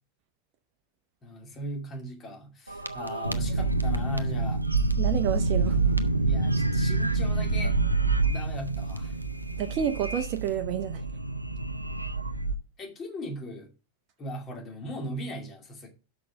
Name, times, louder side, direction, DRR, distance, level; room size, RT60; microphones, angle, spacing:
voice 1, 1.2-4.6 6.2-7.8 8.3-9.2 12.8-13.7 14.2-15.9, equal, 25° left, 2.5 m, -38 dB
sound 1, 2.7-12.5, right 3 dB, 85° right, 0.6 m, -27 dB
voice 2, 5.0-5.8 9.6-11.0, right 9 dB, 40° right, 0.7 m, -29 dB
sound 2, 5.6-12.6, equal, 10° left, 3.9 m, -46 dB
6.1 x 5.8 x 6.0 m
figure-of-eight pair, 90°, 0 cm